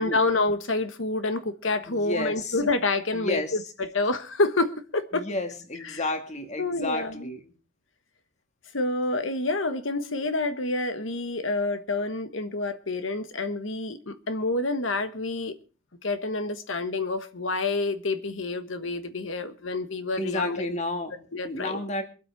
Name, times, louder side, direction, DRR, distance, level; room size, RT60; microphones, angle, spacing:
voice 1, 0.0-5.2 5.8-6.0 6.6-7.4 8.7-15.6 16.0-20.8 21.3-21.8, left 2 dB, 70° left, 10 dB, 1.3 m, -28 dB
voice 2, 1.9-2.6 3.1-3.6 5.1-7.5 20.2-22.0, left 1 dB, 35° left, 6 dB, 2.0 m, -31 dB
24.0 x 8.4 x 4.7 m, 0.36 s
head